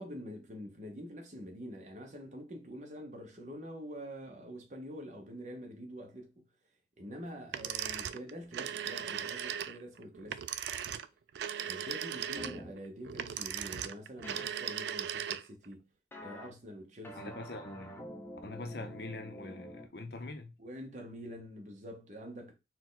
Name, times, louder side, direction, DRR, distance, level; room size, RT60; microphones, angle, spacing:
voice 1, 0.0-6.4 7.0-10.4 11.6-15.8 16.2-17.3 20.6-22.5, equal, 45° right, 1.0 m, -46 dB
sound 1, 7.5-15.7, right 9 dB, 70° right, 0.3 m, -38 dB
sound 2, 12.4-12.7 14.2-14.5 16.1-16.5 17.0-19.9, equal, 10° left, 0.6 m, -47 dB
voice 2, 17.1-18.0 18.4-20.5, left 2 dB, 65° left, 0.8 m, -43 dB
4.5 x 2.3 x 3.9 m
head